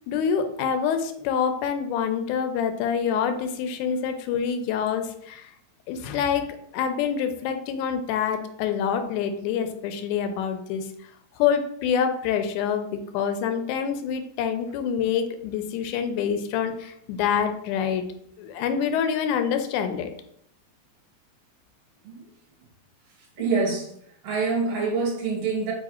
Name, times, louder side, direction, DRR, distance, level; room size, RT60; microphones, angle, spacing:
voice 1, 0.1-5.5 5.9-6.5 6.7-10.9 11.4-18.0 18.4-20.1, left 7 dB, 90° left, 7 dB, 2.0 m, -26 dB
voice 2, 23.4-23.9 24.2-25.7, right 4 dB, 65° right, -2 dB, 1.6 m, -25 dB
4.9 x 2.3 x 4.2 m, 0.70 s
omnidirectional pair, 3.4 m